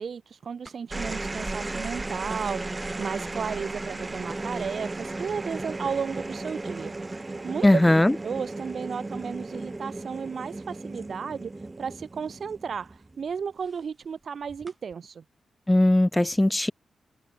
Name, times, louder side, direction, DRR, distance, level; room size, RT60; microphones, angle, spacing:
voice 1, 0.0-7.7 8.2-11.5 11.8-15.2, right 6 dB, 60° right, 2.7 m, -34 dB
sound 1, 0.7-13.3 14.5-14.9, right 2 dB, 25° right, 4.9 m, -35 dB
voice 2, 7.6-8.1 15.7-16.7, left 1 dB, 10° left, 0.4 m, -19 dB
cardioid pair, 75°, 0 cm